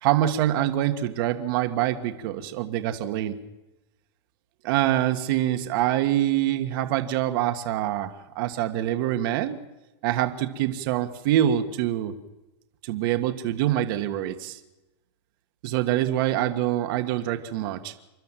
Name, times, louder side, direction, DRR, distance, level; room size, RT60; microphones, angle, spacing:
voice 1, 0.0-3.3 4.6-9.6 10.0-12.2 12.8-14.6 15.6-17.9, right 12 dB, 50° right, 8 dB, 1.7 m, -25 dB
28.5 x 12.0 x 7.5 m, 1.0 s
hypercardioid pair, 135°, 14 cm